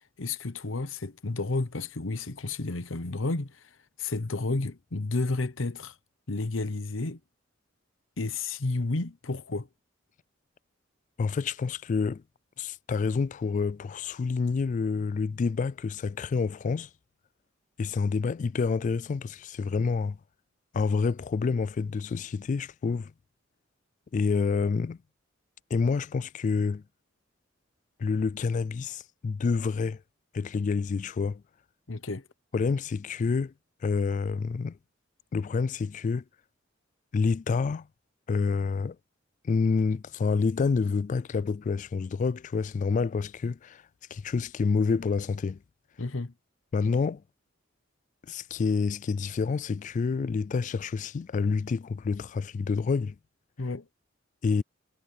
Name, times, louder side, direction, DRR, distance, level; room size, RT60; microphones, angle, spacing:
voice 1, 0.2-6.0 6.3-7.2 8.2-9.7 31.9-32.3 46.0-46.3 53.6-53.9, left 3 dB, 80° left, 1.0 m, -31 dB
voice 2, 11.2-12.2 12.6-16.9 17.8-20.2 20.7-23.1 24.1-25.0 25.7-26.8 28.0-30.0 30.3-31.4 32.5-33.5 33.8-34.8 35.3-36.2 37.1-37.9 38.3-39.0 39.4-43.8 44.1-45.6 46.7-47.2 48.3-53.2 54.4-54.6, left 4 dB, 40° left, 0.3 m, -28 dB
head